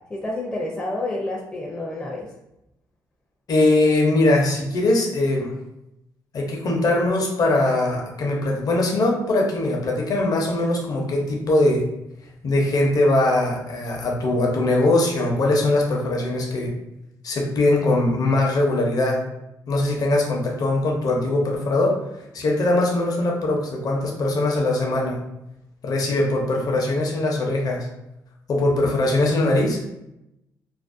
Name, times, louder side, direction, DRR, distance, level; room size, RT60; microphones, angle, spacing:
voice 1, 0.1-2.3, left 2 dB, 15° left, -3 dB, 0.4 m, -29 dB
voice 2, 3.5-5.5 6.3-11.9 12.4-16.7 17.2-19.2 19.7-22.0 22.3-25.2 25.8-27.9 28.5-29.9, left 2 dB, 55° left, 0 dB, 0.6 m, -21 dB
2.5 x 2.0 x 2.5 m, 0.87 s
cardioid pair, 90°, 8 cm